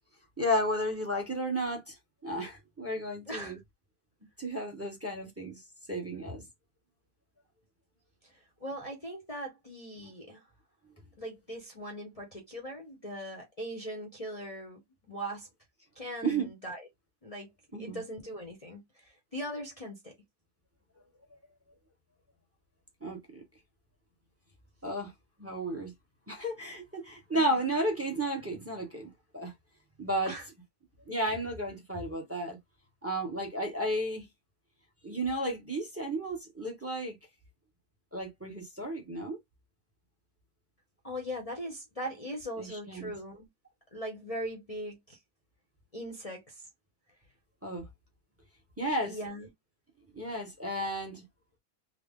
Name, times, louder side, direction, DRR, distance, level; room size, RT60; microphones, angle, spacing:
voice 1, 0.4-1.9 2.2-3.6 4.4-5.6 5.9-6.4 16.2-16.5 17.7-18.0 23.0-23.4 24.8-25.1 25.4-25.9 26.3-29.5 30.0-30.3 31.1-32.6 33.0-34.2 35.0-37.2 38.1-39.4 42.6-43.1 47.6-47.8 48.8-49.2 50.1-51.2, right 1 dB, 10° right, 0.8 m, -33 dB
voice 2, 3.3-3.6 8.2-10.5 11.2-15.5 16.0-16.9 17.2-17.5 17.8-20.1 27.3-27.6 30.2-30.4 41.0-43.5 43.9-45.2 45.9-46.7 49.0-49.5, equal, 30° left, 0.7 m, -40 dB
3.7 x 2.0 x 3.6 m
omnidirectional pair, 1.5 m